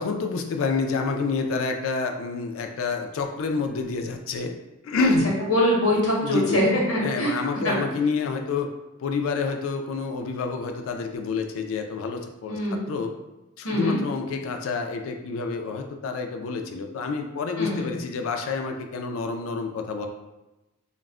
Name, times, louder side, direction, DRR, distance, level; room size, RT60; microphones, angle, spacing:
voice 1, 0.0-4.5 4.8-5.4 6.2-6.6 7.0-8.7 9.0-13.2 13.6-20.1, left 4 dB, 70° left, 5 dB, 0.3 m, -28 dB
voice 2, 5.5-7.4 7.6-7.7 12.5-12.8 13.6-14.0 17.6-17.9, equal, 85° left, -2 dB, 0.8 m, -23 dB
2.2 x 2.0 x 3.5 m, 1.0 s
head